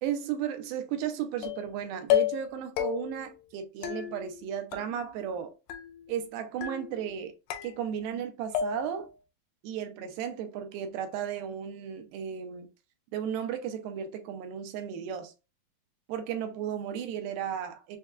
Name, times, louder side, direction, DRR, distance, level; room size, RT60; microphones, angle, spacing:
voice 1, 0.0-5.5 6.1-7.3 7.6-9.1 9.6-12.7 13.1-15.3 16.1-18.0, right 9 dB, 80° right, 2.2 m, -34 dB
sound 1, 1.4-1.8 2.1-2.5 2.8-3.3 3.8-4.4 4.7-5.4 5.7-6.2 6.6-7.1 7.5-8.2 8.5-9.1, left 12 dB, 80° left, 2.1 m, -32 dB
6.3 x 2.2 x 2.3 m
omnidirectional pair, 4.4 m